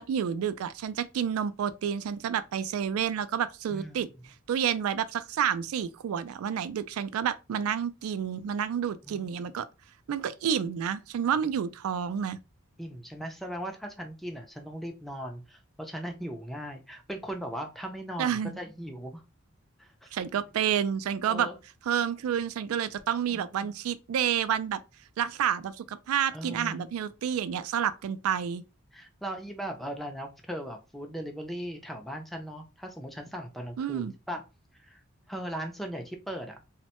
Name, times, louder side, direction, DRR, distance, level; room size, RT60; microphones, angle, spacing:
voice 1, 0.0-4.1 4.5-9.7 10.1-12.4 18.2-18.6 20.1-21.5 21.9-24.8 25.2-28.6 33.8-34.1, right 8 dB, 90° right, 0.3 m, -29 dB
voice 2, 3.7-4.1 9.0-9.6 12.8-19.2 19.8-20.1 21.3-21.6 23.3-23.7 26.3-26.9 28.9-34.4 34.8-35.0 35.3-36.6, equal, ahead, 0.4 m, -38 dB
3.1 x 2.1 x 2.8 m
head